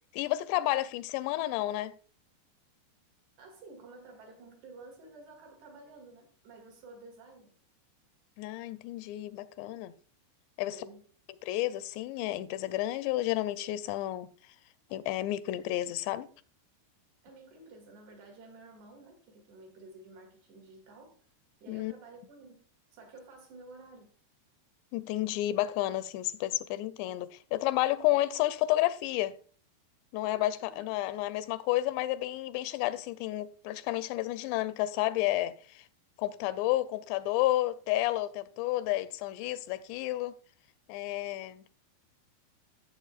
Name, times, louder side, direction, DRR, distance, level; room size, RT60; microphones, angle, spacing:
voice 1, 0.1-1.9 8.4-9.9 10.6-10.8 11.4-14.3 14.9-16.3 21.7-21.9 24.9-29.4 30.1-35.9 36.2-40.3 40.9-41.6, left 15 dB, 90° left, 2.7 m, -31 dB
voice 2, 3.4-7.5 10.6-11.1 17.2-21.2 21.6-22.6 22.9-24.1 30.3-30.9, right 2 dB, 75° right, 4.2 m, -52 dB
15.0 x 7.3 x 2.4 m
omnidirectional pair, 4.8 m